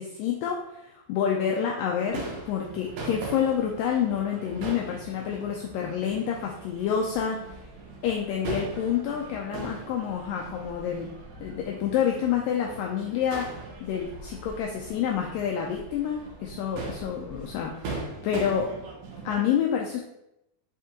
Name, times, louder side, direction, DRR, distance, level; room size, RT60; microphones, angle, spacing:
voice 1, 0.0-7.4 8.0-11.1 11.4-13.5 13.8-18.8 19.3-20.0, left 8 dB, 80° left, 0 dB, 2.1 m, -28 dB
Crowd / Fireworks, 2.1-19.4, right 3 dB, 65° right, 2.6 m, -40 dB
10.5 x 3.7 x 2.9 m, 0.85 s
omnidirectional pair, 4.3 m